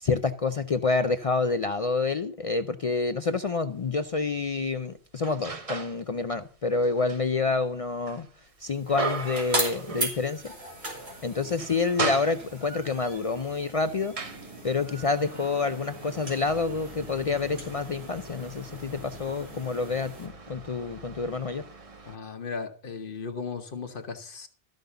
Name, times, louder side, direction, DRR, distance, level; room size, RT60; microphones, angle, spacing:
voice 1, 0.0-8.3 8.6-10.5 11.2-14.1 14.6-21.7, left 4 dB, 45° left, 0.5 m, -28 dB
sound 1, 3.8-3.9 4.5-6.0 6.4-10.5 10.9-11.0 11.4-12.8 13.5-22.2, right 4 dB, 35° right, 1.0 m, -38 dB
sound 2, 8.6-20.3, right 1 dB, 80° right, 3.4 m, -38 dB
voice 2, 22.0-24.5, left 5 dB, 60° left, 1.2 m, -36 dB
13.0 x 5.3 x 6.8 m
omnidirectional pair, 1.0 m